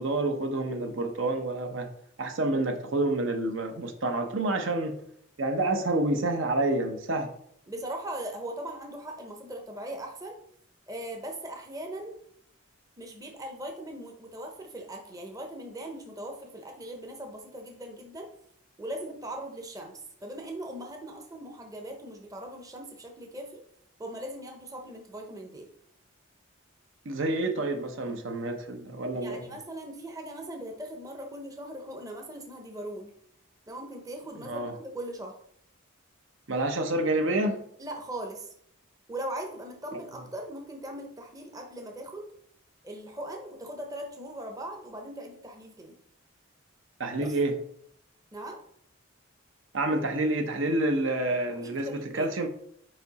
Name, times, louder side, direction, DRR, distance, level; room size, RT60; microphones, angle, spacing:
voice 1, 0.0-1.9 2.2-4.9 5.4-7.3 27.0-29.4 34.4-34.7 36.5-37.6 39.9-40.0 47.0-47.6 49.7-52.5, right 2 dB, 60° right, 5 dB, 0.8 m, -28 dB
voice 2, 7.7-10.4 10.9-12.2 13.0-18.3 18.8-23.6 24.0-25.7 29.1-33.1 33.7-35.4 37.8-38.5 39.1-42.3 42.8-45.9 47.2-47.4 48.3-48.6 51.6-52.3, right 1 dB, 15° right, 2 dB, 0.7 m, -39 dB
5.0 x 4.7 x 4.0 m, 0.67 s
head